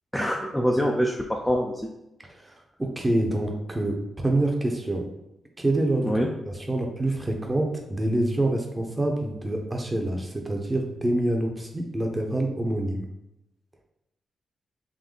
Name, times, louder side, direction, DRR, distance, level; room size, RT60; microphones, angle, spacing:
voice 1, 0.1-1.9 6.0-6.3, equal, 5° left, 0 dB, 0.4 m, -25 dB
voice 2, 2.4-5.0 5.6-6.1 6.5-13.1, right 1 dB, 15° right, 2 dB, 0.7 m, -26 dB
3.7 x 2.7 x 3.8 m, 0.86 s
wide cardioid pair, 120°, 0 cm